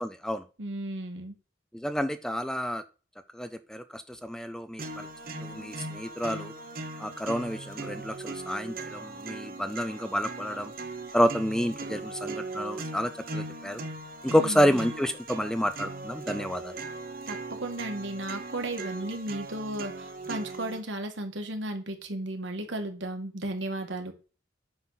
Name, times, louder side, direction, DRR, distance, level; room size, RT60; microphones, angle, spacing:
voice 1, 0.0-0.4 1.7-2.8 3.3-5.1 5.4-6.5 7.0-10.7 11.1-13.8 14.2-16.8, equal, 5° left, 10 dB, 0.5 m, -29 dB
voice 2, 0.6-1.3 14.3-14.8 17.3-24.1, right 1 dB, 80° right, 5 dB, 1.8 m, -35 dB
sound 1, 4.8-20.8, right 3 dB, 50° right, 1.2 m, -39 dB
9.3 x 6.1 x 4.1 m, 0.34 s
head